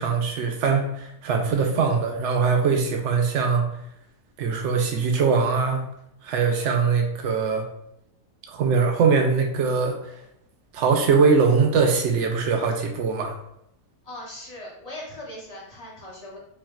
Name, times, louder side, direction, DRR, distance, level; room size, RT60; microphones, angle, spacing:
voice 1, 0.0-3.6 4.4-5.9 6.2-7.6 8.5-10.0 10.7-13.3, right 5 dB, 60° right, 3 dB, 0.9 m, -22 dB
voice 2, 14.0-16.4, left 1 dB, 25° left, -5 dB, 1.2 m, -39 dB
5.6 x 2.5 x 2.4 m, 0.78 s
omnidirectional pair, 1.6 m